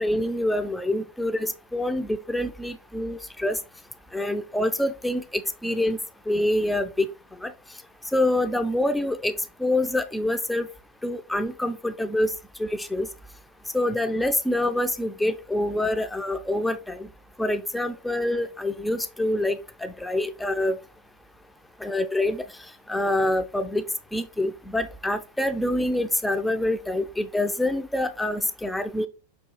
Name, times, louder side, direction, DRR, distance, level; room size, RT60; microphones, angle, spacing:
voice 1, 0.0-3.6 4.1-6.0 6.3-7.1 7.4-7.5 8.1-9.3 9.6-10.7 11.0-12.3 12.6-13.1 13.7-17.0 17.4-20.8 21.8-22.4 22.9-23.8 24.1-29.1, left 1 dB, 5° left, 9 dB, 0.4 m, -26 dB
5.5 x 2.3 x 2.9 m, 0.31 s
figure-of-eight pair, 90°, 0 cm